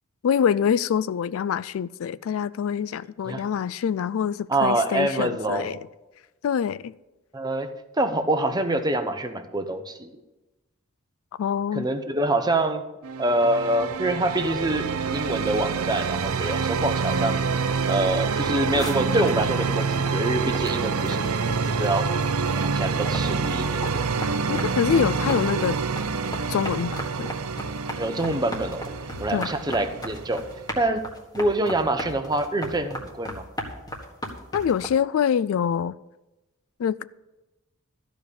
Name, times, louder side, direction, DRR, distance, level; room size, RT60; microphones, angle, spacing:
voice 1, 0.2-5.8 6.4-6.9 11.4-11.9 24.5-25.8 26.5-27.3 29.3-29.5 34.5-35.9 36.8-37.0, left 7 dB, 65° left, 0.3 m, -25 dB
voice 2, 4.5-5.8 7.3-7.7 8.0-10.1 11.7-12.8 13.2-17.4 17.9-22.0 22.6-24.0 28.0-28.9 29.2-30.4 30.8-31.0 31.3-33.4, right 1 dB, 20° right, 0.8 m, -26 dB
sound 1, 13.0-30.8, right 5 dB, 85° right, 0.7 m, -27 dB
sound 2, 18.8-22.8 23.0-34.9, equal, 20° left, 1.6 m, -36 dB
13.5 x 5.2 x 8.5 m
head